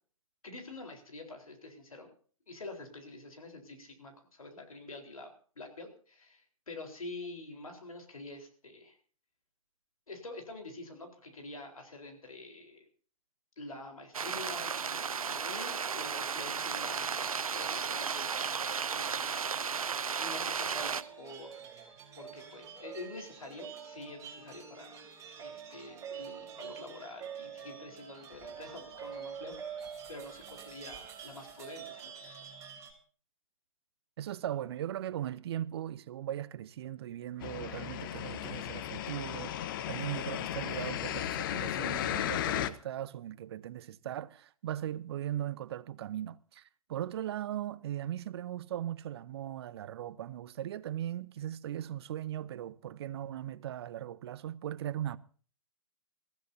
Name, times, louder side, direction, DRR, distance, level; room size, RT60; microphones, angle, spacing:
voice 1, 0.4-2.1 2.5-9.0 10.1-12.9 13.6-19.6 20.2-21.6 22.1-25.1 25.4-32.7, left 2 dB, 80° left, 4.1 m, -47 dB
sound 1, 14.1-21.0, right 6 dB, 80° right, 0.6 m, -34 dB
sound 2, 20.7-32.9, right 7 dB, 15° right, 3.4 m, -46 dB
voice 2, 34.2-55.2, right 11 dB, 45° right, 0.7 m, -38 dB
sound 3, 37.4-42.7, left 11 dB, 40° left, 0.9 m, -35 dB
23.0 x 15.0 x 2.7 m
figure-of-eight pair, 130°, 18 cm